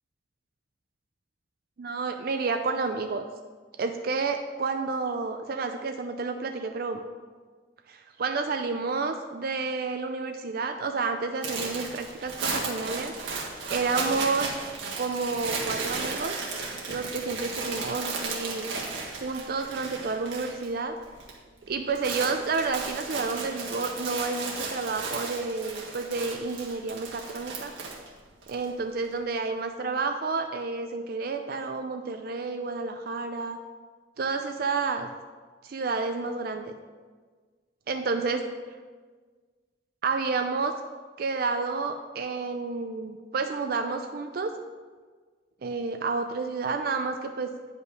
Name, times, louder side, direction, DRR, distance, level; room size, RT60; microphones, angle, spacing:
voice 1, 1.8-3.2 3.8-7.0 7.9-13.1 13.7-14.6 15.0-16.4 16.9-18.7 19.2-21.0 21.7-27.7 28.5-33.6 34.2-35.1 35.6-36.7 37.9-38.4 40.0-40.7 41.2-44.5 45.6-47.5, right 4 dB, 50° right, 6 dB, 0.4 m, -30 dB
sound 1, 11.4-20.7 21.0-21.4 21.7-28.6, right 4 dB, 85° right, 1.6 m, -35 dB
9.6 x 5.5 x 4.9 m, 1.5 s
head